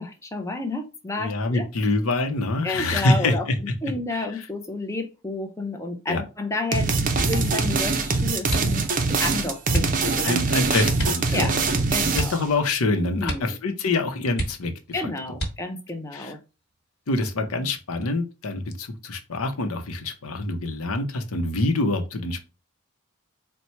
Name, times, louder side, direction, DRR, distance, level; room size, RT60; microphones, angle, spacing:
voice 1, 0.0-1.9 2.6-6.9 7.2-10.7 11.3-11.5 11.9-12.4 13.2-13.6 14.9-16.4, left 2 dB, 15° left, 4 dB, 0.5 m, -31 dB
voice 2, 1.2-3.5 4.1-4.3 6.1-6.2 10.2-11.7 12.1-14.7 16.1-16.3 17.1-22.4, left 2 dB, 80° left, 7 dB, 0.7 m, -25 dB
sound 1, 6.7-12.5, right 4 dB, 40° right, 0.5 m, -23 dB
sound 2, 7.1-7.6 8.4-9.1 9.7-10.0 10.9-11.3 11.6-11.7 12.1-12.9 13.2-13.6 13.9-14.0 14.3-14.9 15.3-15.9 16.6-17.2 17.6-18.0, right 1 dB, 45° left, 1.3 m, -30 dB
4.3 x 2.1 x 4.3 m, 0.30 s
head